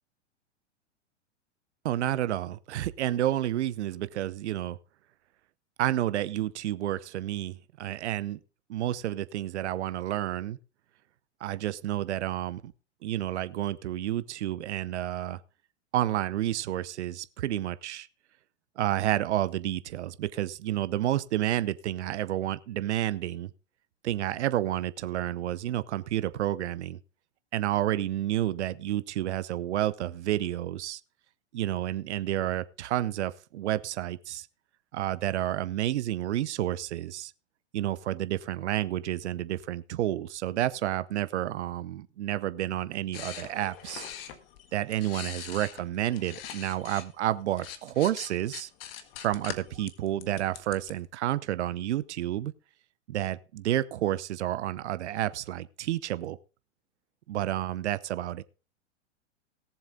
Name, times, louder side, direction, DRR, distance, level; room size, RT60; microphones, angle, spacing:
voice 1, 1.8-4.8 5.8-8.4 8.7-10.6 11.4-12.7 13.0-15.4 15.9-18.1 18.8-23.5 24.0-27.0 27.5-31.0 31.5-34.5 34.9-37.3 37.7-44.1 44.7-48.7 49.2-52.5 53.1-56.4 57.3-58.4, right 13 dB, 70° right, 0.8 m, -30 dB
sound 1, 43.1-47.1 47.4-50.9, left 10 dB, 55° left, 1.7 m, -43 dB
18.0 x 7.3 x 3.8 m
hypercardioid pair, 105°, 36 cm